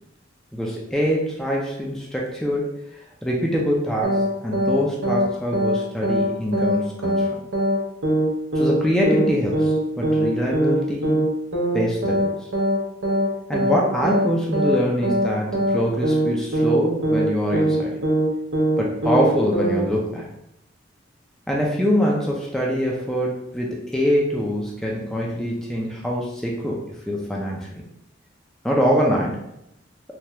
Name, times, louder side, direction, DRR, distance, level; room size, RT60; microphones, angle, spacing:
voice 1, 0.5-7.3 8.6-11.2 11.7-12.5 13.5-18.0 18.8-20.3 21.5-26.8 27.1-27.7 28.6-29.4, equal, 5° left, -3 dB, 0.4 m, -24 dB
sound 1, 4.0-4.3 4.5-4.8 5.0-5.3 5.5-5.8 6.0-6.3 6.5-6.8 7.0-7.3 7.5-7.8 8.0-8.3 8.5-8.8 9.0-9.3 9.5-9.8 10.0-10.3 10.5-10.8 11.0-11.3 11.5-11.8 12.0-12.3 12.5-12.8 13.0-13.3 13.5-13.8 14.0-14.3 14.5-14.8 15.0-15.3 15.5-16.3 16.5-16.8 17.0-17.3 17.5-17.8 18.0-18.3 18.5-18.8 19.0-19.3 19.5-19.8, right 1 dB, 85° right, 0.7 m, -21 dB
3.2 x 2.3 x 2.8 m, 0.82 s
head